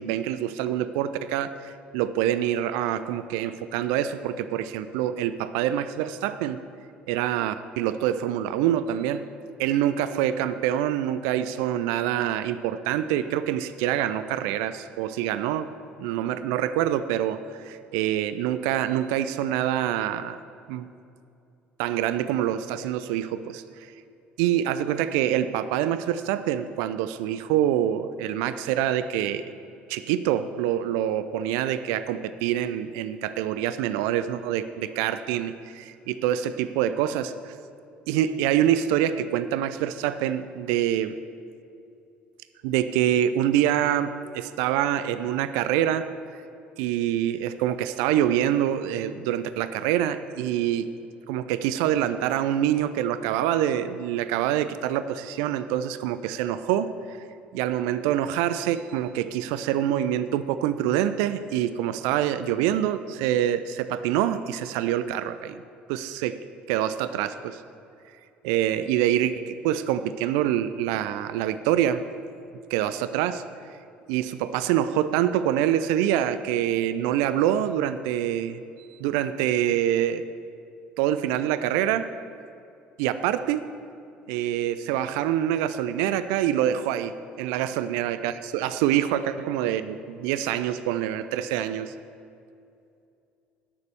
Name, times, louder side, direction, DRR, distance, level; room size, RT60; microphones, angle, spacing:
voice 1, 0.0-6.6 7.1-9.2 9.6-15.7 16.0-20.4 20.7-20.9 21.8-23.9 24.4-29.5 29.9-37.5 38.1-41.2 42.6-46.4 46.8-50.9 51.3-57.2 57.5-65.6 65.9-67.6 68.4-72.0 72.7-73.4 74.1-78.6 79.0-80.3 81.0-82.1 83.0-83.6 84.3-91.9, right 11 dB, 65° right, 12 dB, 0.4 m, -26 dB
10.0 x 6.6 x 6.8 m, 2.6 s
figure-of-eight pair, 60°, 6 cm